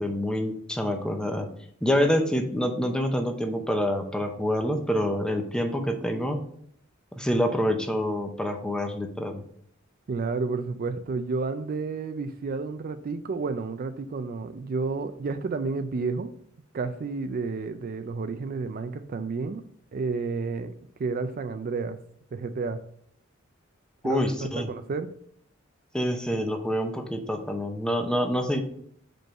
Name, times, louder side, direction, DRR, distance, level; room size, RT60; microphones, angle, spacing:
voice 1, 0.0-1.5 1.8-6.5 7.1-9.4 24.0-24.7 25.9-28.6, equal, 5° left, 5 dB, 0.7 m, -27 dB
voice 2, 10.1-16.3 16.7-19.6 19.9-20.7 21.0-22.0 22.3-22.8 24.0-25.1, right 4 dB, 45° right, 10 dB, 0.4 m, -31 dB
5.3 x 4.5 x 4.6 m, 0.65 s
head